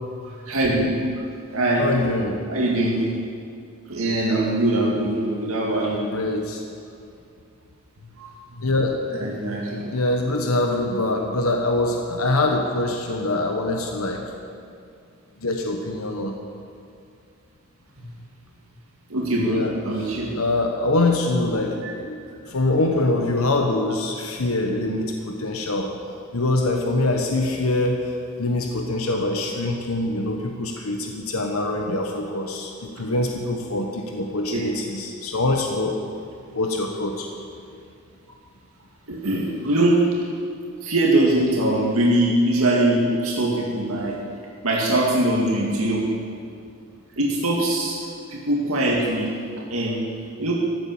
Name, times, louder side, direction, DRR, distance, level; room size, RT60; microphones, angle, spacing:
voice 1, 0.5-1.1 1.5-2.0 2.5-3.0 3.9-6.0 8.2-8.7 9.1-9.9 18.0-18.1 19.1-20.3 21.8-21.9 34.5-34.7 39.1-40.1 40.8-44.2 44.6-46.1 47.2-48.0 48.3-50.1 50.4-50.5, right 1 dB, 85° right, -4 dB, 2.1 m, -22 dB
voice 2, 1.8-2.3 5.8-6.6 8.6-9.0 9.9-14.2 15.4-16.3 19.4-19.7 20.4-22.2 22.4-25.9 26.3-28.0 28.4-35.9 36.5-37.3, left 2 dB, 90° left, 2 dB, 1.2 m, -24 dB
14.5 x 9.1 x 7.2 m, 2.4 s
head